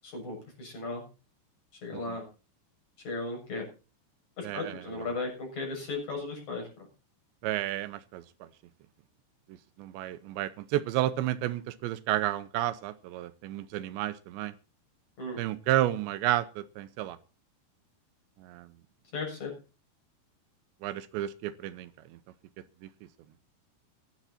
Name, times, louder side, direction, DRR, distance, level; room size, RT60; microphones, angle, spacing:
voice 1, 0.0-1.0 1.8-2.2 3.0-3.6 4.4-6.7 15.2-15.4 19.1-19.5, left 3 dB, 40° left, 1 dB, 8.4 m, -36 dB
voice 2, 4.4-5.1 7.4-8.5 9.5-14.5 15.4-17.2 18.4-18.7 20.8-22.2 22.8-22.9, right 14 dB, 85° right, 13 dB, 3.1 m, -32 dB
16.5 x 12.0 x 4.3 m, 0.33 s
omnidirectional pair, 5.0 m